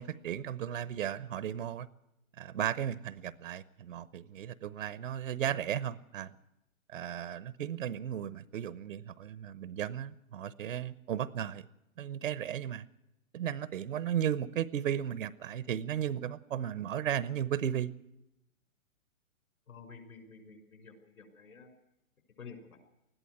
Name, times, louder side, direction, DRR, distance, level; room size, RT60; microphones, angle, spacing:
voice 1, 0.0-1.9 2.4-6.3 6.9-11.6 12.0-12.9 13.3-17.9, right 10 dB, 70° right, 1.0 m, -35 dB
voice 2, 19.7-21.7 22.4-22.8, left 5 dB, 80° left, 5.8 m, -50 dB
20.5 x 13.5 x 9.4 m
hypercardioid pair, 160°, 41 cm